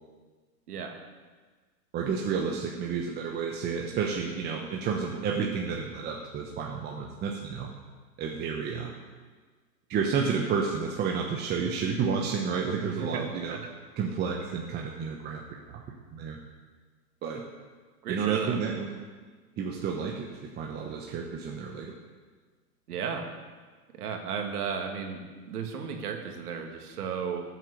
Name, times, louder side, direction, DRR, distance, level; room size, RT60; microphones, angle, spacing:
voice 1, 1.9-7.7 8.2-8.9 9.9-13.6 14.0-15.4 15.7-15.8 16.1-16.4 17.2-17.4 18.1-18.9 19.6-21.9, right 6 dB, 20° right, 0 dB, 1.1 m, -31 dB
voice 2, 12.8-13.2 13.5-13.6 18.0-18.6 22.9-23.3 24.0-27.4, right 6 dB, 65° right, 3 dB, 2.4 m, -34 dB
13.5 x 7.6 x 6.7 m, 1.4 s
hypercardioid pair, 130°, 48 cm